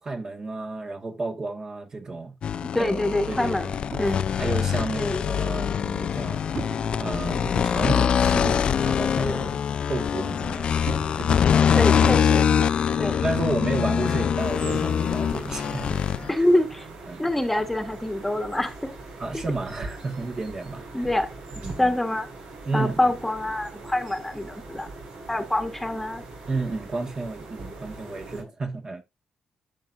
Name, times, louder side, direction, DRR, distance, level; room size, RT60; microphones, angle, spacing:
voice 1, 0.0-2.3 2.8-2.9 3.3-3.5 4.0-6.4 7.0-9.6 9.9-10.9 11.2-11.9 12.6-16.0 17.1-17.2 19.2-20.8 21.6-21.9 22.6-23.0 26.5-29.0, right 3 dB, 35° right, 1.6 m, -32 dB
sound 1, 2.4-16.3, left 8 dB, 55° left, 0.5 m, -24 dB
voice 2, 2.7-4.2 5.0-5.2 11.7-12.5 13.0-13.2 16.3-16.9 17.2-18.9 19.3-19.4 20.9-21.3 21.8-22.3 22.7-24.9 25.3-26.2, left 1 dB, 10° left, 1.4 m, -25 dB
sound 2, 3.9-4.6 6.4-8.3 9.5-9.6 10.0-10.1 10.8-13.1 14.1-14.2 14.5-16.1, right 4 dB, 50° right, 4.6 m, -39 dB
sound 3, 14.4-28.4, right 3 dB, 80° right, 5.9 m, -41 dB
12.5 x 6.0 x 2.6 m
cardioid pair, 100°, 2 cm